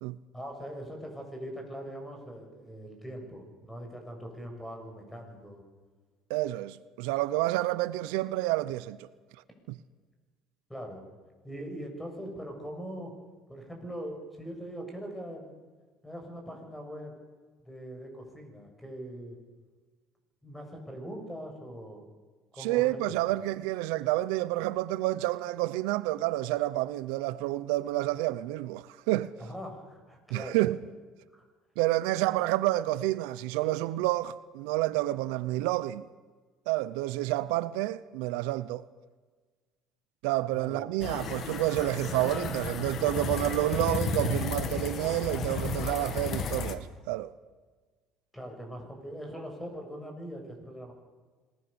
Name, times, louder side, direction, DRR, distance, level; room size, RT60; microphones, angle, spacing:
voice 1, 0.3-5.6 10.7-11.0 11.4-13.1 13.5-15.6 16.0-17.1 17.7-19.4 20.4-22.0 22.5-23.3 29.4-30.6 31.3-31.4 40.5-40.9 48.3-50.9, equal, 10° left, 7.4 m, -41 dB
voice 2, 6.3-9.0 9.7-9.8 22.6-29.3 30.3-30.8 31.8-36.1 36.7-38.8 40.2-47.3, right 17 dB, 90° right, 0.7 m, -29 dB
sound 1, 41.0-46.8, left 5 dB, 50° left, 2.1 m, -33 dB
26.0 x 19.0 x 7.1 m
cardioid pair, 110°, 0 cm